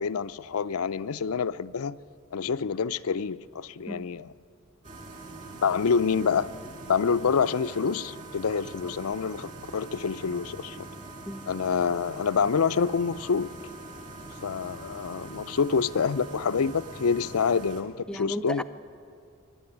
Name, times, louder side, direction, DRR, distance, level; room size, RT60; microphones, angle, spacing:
voice 1, 0.0-2.0 2.3-4.3 5.6-6.5 6.8-10.9 11.5-13.5 14.4-18.6, left 6 dB, 80° left, 0.5 m, -27 dB
sound 1, 4.8-17.8, right 2 dB, 35° right, 2.4 m, -43 dB
voice 2, 18.1-18.6, equal, 5° left, 0.5 m, -35 dB
22.5 x 12.0 x 9.8 m
head